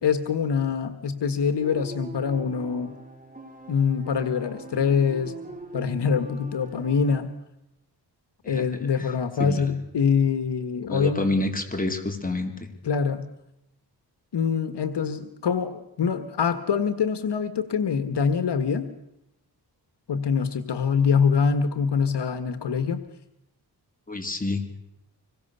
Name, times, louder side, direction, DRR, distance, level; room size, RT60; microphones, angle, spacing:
voice 1, 0.0-2.9 3.7-5.3 5.7-7.3 8.4-11.3 12.8-13.2 14.3-18.9 20.1-23.0, left 6 dB, 75° left, 10 dB, 1.7 m, -24 dB
sound 1, 1.6-7.2, right 2 dB, 20° right, 4.5 m, -42 dB
voice 2, 8.4-9.1 9.4-9.7 10.9-12.7 24.1-24.8, left 2 dB, 20° left, 3 dB, 4.4 m, -29 dB
25.5 x 22.5 x 7.0 m, 0.84 s
cardioid pair, 75°, 42 cm